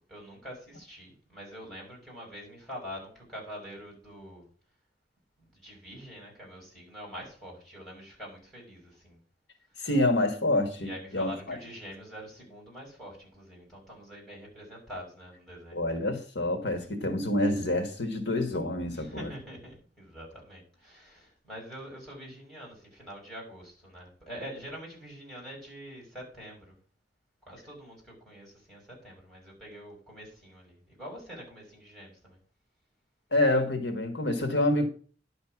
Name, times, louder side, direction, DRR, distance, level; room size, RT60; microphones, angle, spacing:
voice 1, 0.1-4.5 5.4-9.2 10.8-15.8 16.9-17.0 18.9-26.8 27.5-32.4, equal, 5° left, 6.1 m, -45 dB
voice 2, 9.8-11.6 15.7-19.3 33.3-34.9, left 1 dB, 70° left, 1.5 m, -27 dB
11.0 x 6.6 x 5.9 m
head